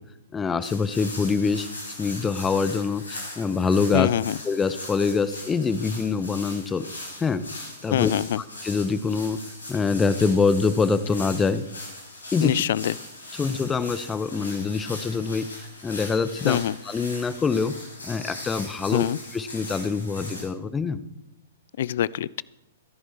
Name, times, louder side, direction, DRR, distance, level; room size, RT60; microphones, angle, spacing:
voice 1, 0.3-1.7 2.0-4.1 4.4-6.9 7.2-7.4 7.8-8.1 8.6-9.4 9.7-11.6 12.3-12.6 13.4-15.5 15.8-16.6 16.8-17.8 18.0-19.0 19.3-21.0, left 5 dB, 15° left, 15 dB, 0.8 m, -24 dB
sound 1, 0.6-20.4, left 2 dB, 70° left, 6.3 m, -40 dB
voice 2, 3.9-4.4 7.9-8.4 12.4-12.9 16.4-16.8 18.9-19.2 21.8-22.4, left 11 dB, 50° left, 24 dB, 0.4 m, -24 dB
22.5 x 11.0 x 4.3 m, 0.91 s
figure-of-eight pair, 110°, 0 cm